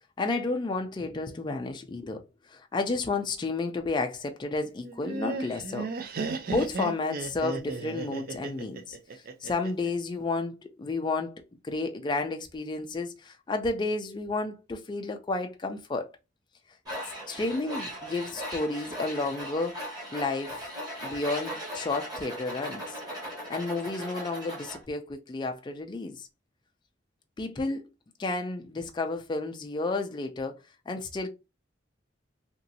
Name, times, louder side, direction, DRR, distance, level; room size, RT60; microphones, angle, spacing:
voice 1, 0.2-5.9 6.5-11.4 11.6-16.1 17.3-19.8 20.1-20.7 21.0-23.0 23.5-26.3 27.4-27.8 28.2-30.6 30.9-31.3, left 3 dB, 25° left, 0.3 m, -31 dB
Laughter, 4.8-9.9, right 3 dB, 50° right, 0.4 m, -35 dB
Tools, 16.8-24.8, equal, 20° right, 1.3 m, -38 dB
2.9 x 2.6 x 2.7 m
head